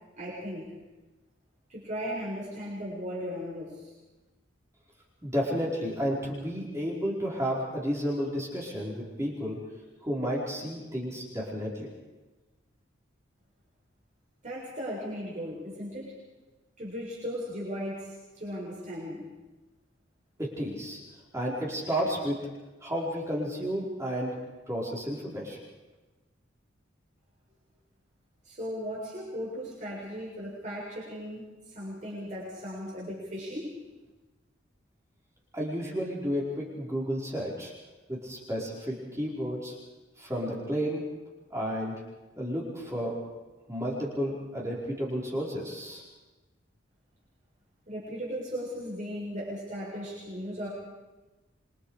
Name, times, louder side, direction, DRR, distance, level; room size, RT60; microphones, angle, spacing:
voice 1, 0.2-0.7 1.7-3.9 14.4-16.1 16.8-19.3 28.4-33.7 47.9-50.7, equal, 40° right, -6 dB, 6.9 m, -37 dB
voice 2, 5.2-9.6 10.0-11.9 20.4-21.0 21.3-22.4 22.8-24.4 24.7-25.6 35.5-37.7 38.1-39.7 40.2-41.0 41.5-42.0 42.4-43.2 43.7-46.0, equal, 15° right, -4 dB, 5.0 m, -32 dB
28.0 x 25.0 x 5.1 m, 1.1 s
head